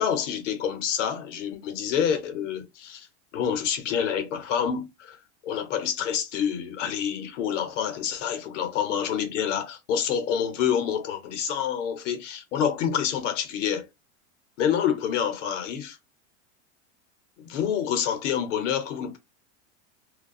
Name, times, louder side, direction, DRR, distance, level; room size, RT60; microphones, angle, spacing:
voice 1, 0.0-3.1 3.3-5.2 5.4-13.9 14.6-16.0 17.4-19.2, left 8 dB, 85° left, 0.8 m, -27 dB
2.3 x 2.2 x 2.5 m
supercardioid pair, 120°, 36 cm